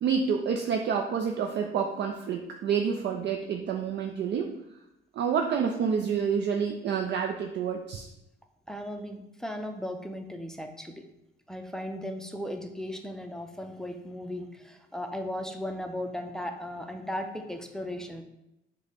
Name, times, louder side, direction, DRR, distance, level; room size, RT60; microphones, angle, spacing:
voice 1, 0.0-4.5 5.2-8.1, right 6 dB, 60° right, 2 dB, 0.4 m, -28 dB
voice 2, 8.7-11.0 11.5-18.2, left 1 dB, 5° left, 5 dB, 0.5 m, -36 dB
6.1 x 2.2 x 3.4 m, 0.89 s
cardioid pair, 90°, 20 cm